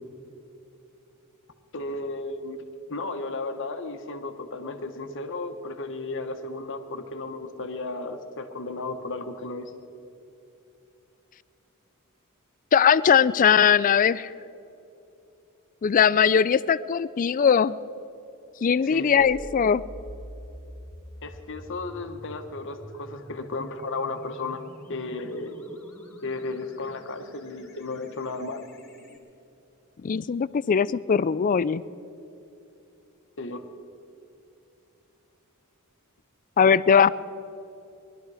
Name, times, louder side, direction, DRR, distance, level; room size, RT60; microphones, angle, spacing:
voice 1, 1.7-2.6 2.9-9.7 18.8-19.3 21.2-24.6 24.9-25.7 26.2-28.7 33.4-33.6, left 3 dB, 60° left, 7 dB, 1.2 m, -34 dB
voice 2, 12.7-14.3 15.8-17.8 18.6-19.8 30.0-31.8 36.6-37.1, left 7 dB, 40° left, 18 dB, 0.3 m, -20 dB
sound 1, 19.2-29.2, equal, 10° left, 2.6 m, -46 dB
21.0 x 12.5 x 4.9 m, 2.9 s
head